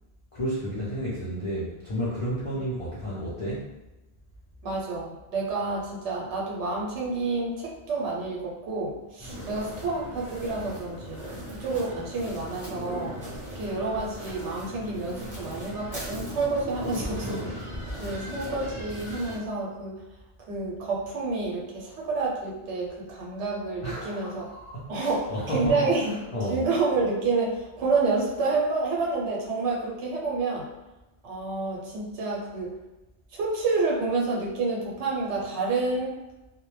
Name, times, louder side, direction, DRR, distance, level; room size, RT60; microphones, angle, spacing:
voice 1, 0.3-3.7 23.8-26.6, equal, 45° left, -8 dB, 0.4 m, -32 dB
voice 2, 4.6-11.2 11.6-13.2 13.5-17.4 18.0-19.9 20.5-24.4 24.9-26.1 26.5-30.7 31.2-32.7 33.3-36.1, right 3 dB, 85° right, -3 dB, 0.9 m, -29 dB
sound 1, 9.2-19.4, equal, 25° right, 0.7 m, -38 dB
2.1 x 2.1 x 3.0 m, 1.0 s
omnidirectional pair, 1.2 m